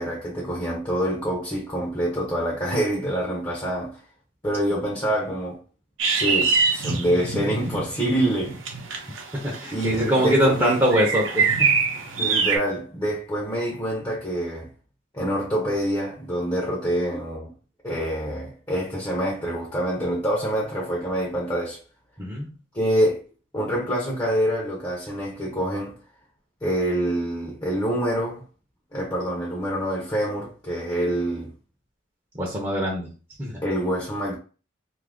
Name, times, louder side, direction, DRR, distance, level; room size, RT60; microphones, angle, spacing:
voice 1, 0.0-4.0 4.4-5.6 6.1-8.6 9.7-10.8 12.2-14.7 15.1-17.5 17.8-21.8 22.7-23.2 23.5-26.0 26.6-28.4 28.9-31.5 33.6-34.3, equal, 20° left, 0.7 m, -26 dB
sound 1, 6.0-12.6, right 5 dB, 80° right, 0.7 m, -25 dB
voice 2, 9.3-11.7 22.2-22.5 32.3-33.1 33.4-33.6, equal, 15° right, 0.7 m, -23 dB
2.7 x 2.5 x 3.5 m
head